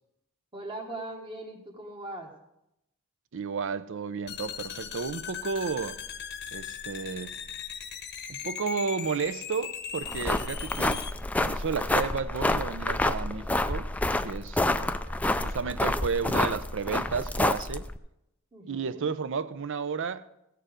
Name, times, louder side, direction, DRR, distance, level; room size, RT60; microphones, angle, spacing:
voice 1, 0.5-2.3 18.5-19.1, right 2 dB, 25° right, 1.2 m, -40 dB
voice 2, 3.3-6.0 6.5-7.3 8.3-11.1 11.4-13.9 14.2-15.0 15.4-17.9 18.7-20.3, right 5 dB, 60° right, 0.5 m, -32 dB
sound 1, 4.3-11.1, left 8 dB, 50° left, 0.8 m, -39 dB
sound 2, 10.0-18.0, left 1 dB, 5° left, 0.3 m, -28 dB
16.0 x 6.8 x 5.0 m
head